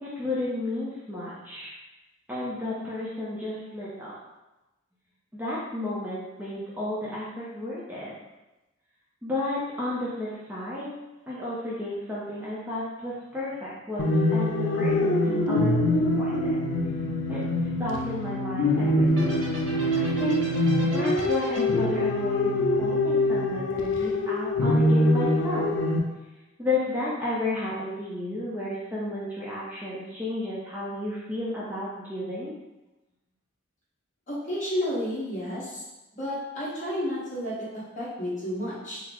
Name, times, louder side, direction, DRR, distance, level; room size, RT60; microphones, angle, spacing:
voice 1, 0.0-1.7 2.3-4.1 5.3-8.1 9.2-10.9 11.3-16.6 17.3-17.5 17.8-19.5 19.9-20.4 20.9-22.5 22.8-25.7 26.6-32.5, left 2 dB, 10° right, -8 dB, 0.5 m, -32 dB
sound 1, 14.0-26.0, left 1 dB, 60° left, 0.3 m, -24 dB
sound 2, 19.1-23.4, right 2 dB, 75° right, 1.0 m, -40 dB
voice 2, 34.3-35.8 36.2-39.0, equal, 35° left, -8 dB, 1.1 m, -31 dB
3.8 x 2.0 x 2.9 m, 1.0 s
head